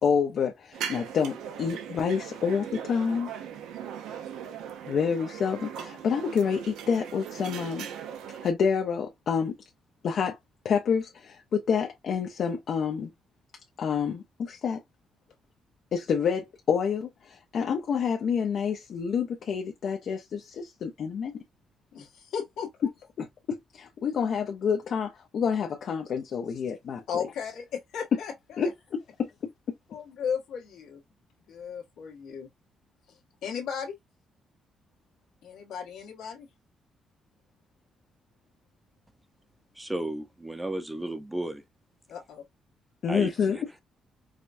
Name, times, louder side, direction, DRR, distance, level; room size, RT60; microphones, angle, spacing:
voice 1, 0.0-3.3 4.8-7.9 8.4-9.6 10.0-10.4 10.6-13.1 13.8-14.8 15.9-21.4 23.2-27.2 28.6-28.7 29.2-29.3 43.0-43.6, left 6 dB, 60° left, 0.6 m, -28 dB
sound 1, 0.7-8.5, right 8 dB, 90° right, 0.6 m, -39 dB
voice 2, 21.9-22.9 27.1-28.7 29.9-31.0 31.5-32.5 33.1-33.9 35.4-36.5 42.1-42.4, left 7 dB, 85° left, 1.4 m, -35 dB
voice 3, 39.7-41.6 43.1-43.8, right 1 dB, 10° right, 0.7 m, -34 dB
4.9 x 2.2 x 2.6 m
cardioid pair, 90°, 0 cm